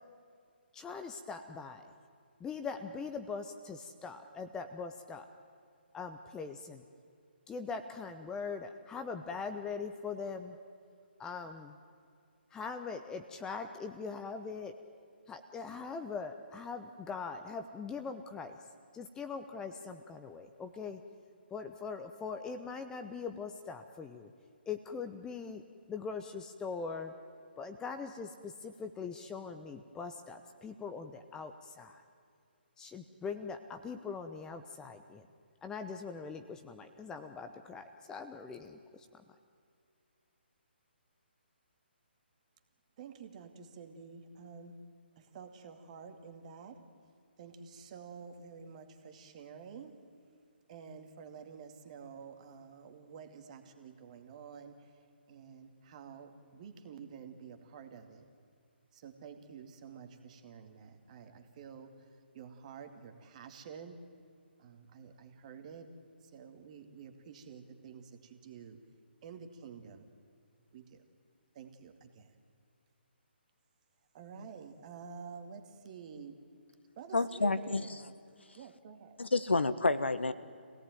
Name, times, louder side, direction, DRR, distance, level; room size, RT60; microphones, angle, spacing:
voice 1, 0.7-1.9 2.4-5.3 5.9-6.8 7.5-10.6 11.2-11.8 12.5-14.7 15.3-18.6 18.9-21.0 21.5-24.3 24.7-25.6 25.9-27.1 27.6-32.0 32.8-35.3 35.6-39.2, left 5 dB, 10° left, 7 dB, 0.8 m, -41 dB
voice 2, 43.0-44.8 45.2-46.8 47.4-50.0 50.7-55.0 55.3-58.3 58.9-64.0 64.6-65.9 66.2-68.8 69.2-70.1 70.7-71.0 71.5-72.3 74.1-76.4 77.0-77.9 78.5-79.2, right 6 dB, 40° right, 6 dB, 2.3 m, -50 dB
voice 3, 77.1-77.8 79.2-80.3, left 3 dB, 85° left, 12 dB, 1.3 m, -29 dB
25.5 x 17.5 x 9.2 m, 2.3 s
figure-of-eight pair, 145°, 6 cm